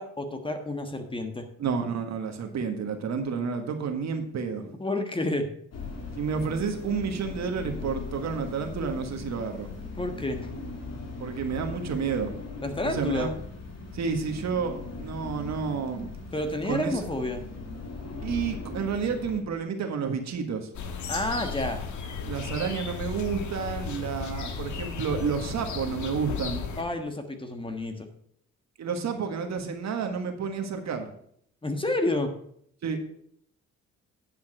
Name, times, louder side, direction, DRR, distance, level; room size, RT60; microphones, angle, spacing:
voice 1, 0.0-1.5 4.8-5.5 10.0-10.5 12.6-13.3 16.3-17.4 21.1-21.8 26.8-28.1 31.6-32.3, left 1 dB, 15° left, 6 dB, 1.4 m, -30 dB
voice 2, 1.6-4.7 6.2-9.7 11.2-12.4 12.8-13.3 13.9-16.2 16.6-17.0 18.2-20.7 22.3-26.7 28.8-31.1 32.8-33.0, right 6 dB, 65° right, 5 dB, 1.7 m, -30 dB
sound 1, 5.7-19.4, left 3 dB, 55° left, 2.6 m, -39 dB
sound 2, 20.7-26.8, left 5 dB, 75° left, 1.3 m, -35 dB
10.0 x 5.7 x 6.3 m, 0.67 s
cardioid pair, 90°, 30 cm